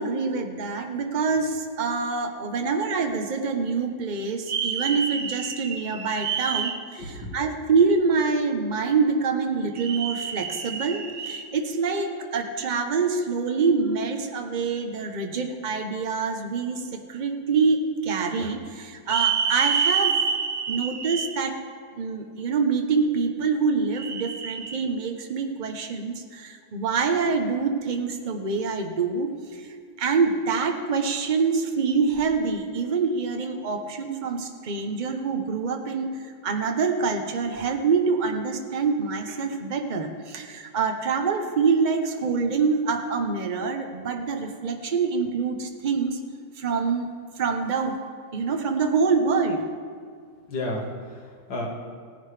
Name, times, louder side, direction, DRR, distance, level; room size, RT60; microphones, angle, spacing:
voice 1, 0.0-21.6 21.9-29.7 30.0-36.1 36.4-46.2 46.6-47.1 47.4-48.0 48.3-49.6, right 5 dB, 50° right, 3 dB, 0.5 m, -25 dB
voice 2, 7.0-7.3 50.5-51.7, left 1 dB, 65° left, -2 dB, 2.5 m, -32 dB
17.0 x 10.5 x 3.3 m, 2.1 s
omnidirectional pair, 2.2 m